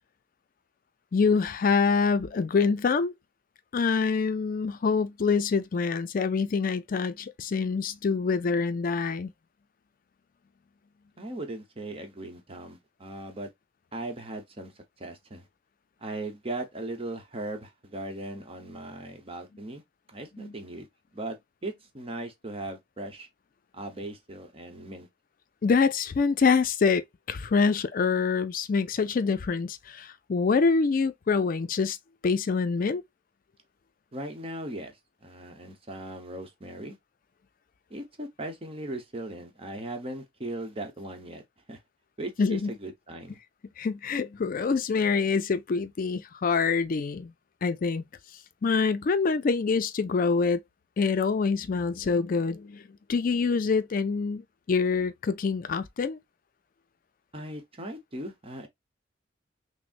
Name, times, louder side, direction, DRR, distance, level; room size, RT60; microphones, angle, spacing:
voice 1, 1.1-3.1 3.7-9.3 20.4-20.5 25.6-32.0 32.2-33.0 42.4-42.7 43.8-47.3 47.6-48.1 48.6-50.6 51.0-52.8 53.1-56.2, left 5 dB, 50° left, 0.4 m, -25 dB
voice 2, 11.2-13.5 13.9-15.5 16.0-19.8 20.1-20.9 21.1-21.4 21.6-23.3 23.7-25.1 34.1-37.0 37.9-41.4 41.7-41.8 42.2-43.4 57.3-58.7, right 1 dB, 30° right, 1.0 m, -38 dB
6.0 x 2.1 x 2.4 m
head